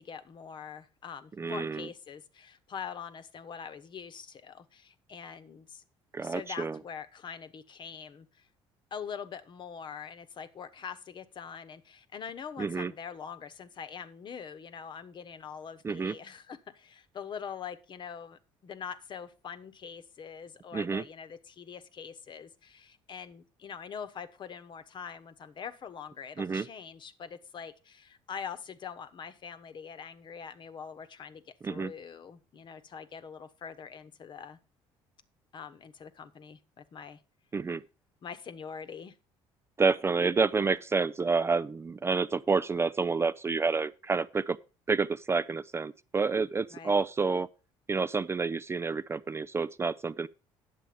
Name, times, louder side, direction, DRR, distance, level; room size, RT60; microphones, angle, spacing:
voice 1, 0.0-5.8 6.2-8.5 8.9-34.6 35.5-37.2 38.2-39.2 46.7-47.0, left 7 dB, 45° left, 1.0 m, -43 dB
voice 2, 1.4-1.9 6.1-6.8 12.6-12.9 15.8-16.1 20.7-21.0 26.4-26.7 31.6-31.9 37.5-37.8 39.8-44.6 44.9-47.5 47.9-50.3, right 4 dB, 25° right, 0.4 m, -29 dB
9.4 x 7.4 x 5.1 m
cardioid pair, 90°, 11 cm